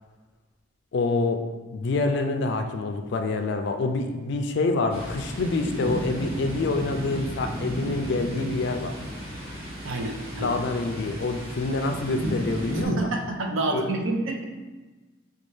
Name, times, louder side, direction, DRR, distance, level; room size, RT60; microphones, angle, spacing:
voice 1, 0.9-1.4 1.7-8.9 10.4-13.1 13.7-13.8, left 3 dB, 55° left, 6 dB, 0.3 m, -26 dB
Thunder, 4.9-12.9, equal, 30° right, 1.3 m, -34 dB
voice 2, 9.8-10.6 12.9-14.4, right 2 dB, 70° right, 3 dB, 0.5 m, -28 dB
5.2 x 2.3 x 3.1 m, 1.2 s
head